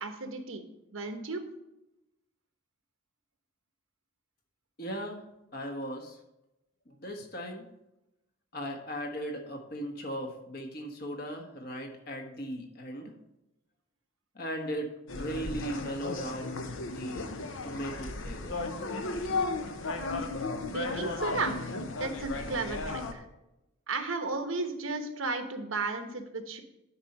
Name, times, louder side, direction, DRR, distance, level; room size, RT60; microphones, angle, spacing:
voice 1, 0.0-1.4 20.7-21.6 22.0-23.3 23.9-26.6, right 3 dB, 80° right, 6 dB, 1.1 m, -34 dB
voice 2, 4.8-5.2 5.5-6.2 6.9-7.7 8.5-13.1 14.3-14.9 15.1-16.5 16.8-17.3 17.6-18.6, equal, 50° left, 3 dB, 1.3 m, -37 dB
sound 1, 15.1-23.1, left 3 dB, 70° left, 0.8 m, -35 dB
9.8 x 4.3 x 5.4 m, 0.91 s
head